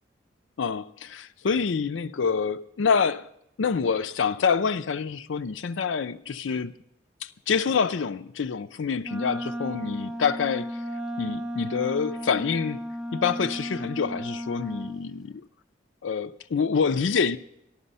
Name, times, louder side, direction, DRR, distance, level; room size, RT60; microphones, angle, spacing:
voice 1, 0.6-3.3 3.6-6.7 7.2-10.8 11.2-12.8 13.1-15.4 16.0-17.4, left 6 dB, 85° left, 0.5 m, -26 dB
Wind instrument woodwind instrument, 9.0-15.0, equal, 5° right, 0.5 m, -34 dB
12.5 x 12.0 x 5.4 m
head